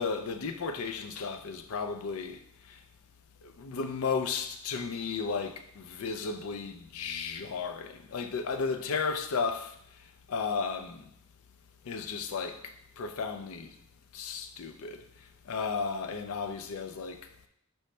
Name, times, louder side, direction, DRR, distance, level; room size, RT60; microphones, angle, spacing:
voice 1, 0.0-2.4 3.4-9.7 10.3-11.0 11.9-13.7 14.1-15.0 15.5-17.2, left 5 dB, 75° left, 0.4 m, -34 dB
5.3 x 3.0 x 3.2 m
head